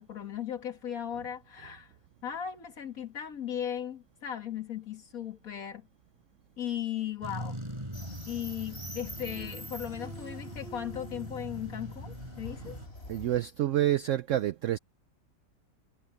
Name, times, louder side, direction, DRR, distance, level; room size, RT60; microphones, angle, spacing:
voice 1, 0.0-1.9 2.2-5.8 6.6-7.6 8.3-12.8, left 9 dB, 55° left, 2.2 m, -37 dB
sound 1, 7.2-12.9, right 1 dB, 15° right, 7.3 m, -42 dB
sound 2, 7.9-13.4, equal, 35° left, 4.1 m, -45 dB
voice 2, 13.1-14.8, right 12 dB, 85° right, 0.6 m, -28 dB
omnidirectional pair, 1.9 m